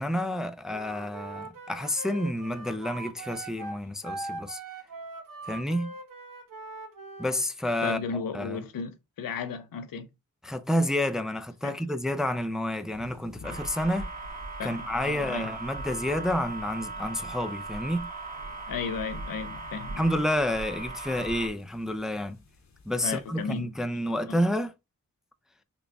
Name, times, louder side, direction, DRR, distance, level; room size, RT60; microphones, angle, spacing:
voice 1, 0.0-4.6 5.5-5.9 7.2-8.0 8.3-8.6 10.4-14.1 14.6-18.1 20.0-22.4 22.9-24.7, left 1 dB, ahead, 0.4 m, -29 dB
Wind instrument woodwind instrument, 0.7-7.4, right 2 dB, 75° right, 0.9 m, -41 dB
voice 2, 7.8-10.1 11.6-11.8 14.6-15.5 18.7-20.1 23.0-23.7 24.0-24.4, left 5 dB, 90° left, 0.6 m, -35 dB
sound 1, 12.9-23.6, left 3 dB, 55° left, 0.9 m, -53 dB
sound 2, 13.4-21.5, right 3 dB, 25° right, 1.5 m, -38 dB
3.8 x 2.3 x 3.3 m
cardioid pair, 65°, 33 cm